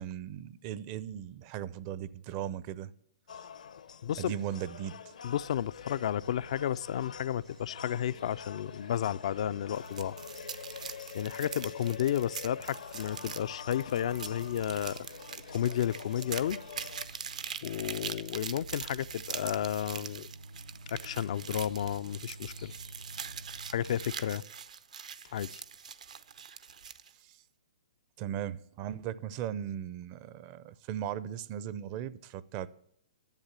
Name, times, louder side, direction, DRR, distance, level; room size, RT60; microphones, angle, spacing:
voice 1, 0.0-2.9 4.2-5.1 28.2-32.7, right 10 dB, 35° right, 0.5 m, -37 dB
sound 1, 3.3-17.0, left 7 dB, 75° left, 0.8 m, -46 dB
voice 2, 4.0-4.3 5.2-10.2 11.1-15.1 15.5-16.6 17.6-20.3 20.9-22.7 23.7-24.4 25.3-25.6, left 10 dB, 55° left, 0.3 m, -32 dB
sound 2, 5.8-24.1, right 2 dB, 90° right, 4.4 m, -52 dB
sound 3, 9.7-27.1, right 7 dB, 75° right, 0.7 m, -43 dB
10.5 x 8.0 x 7.4 m
hypercardioid pair, 130°, 4 cm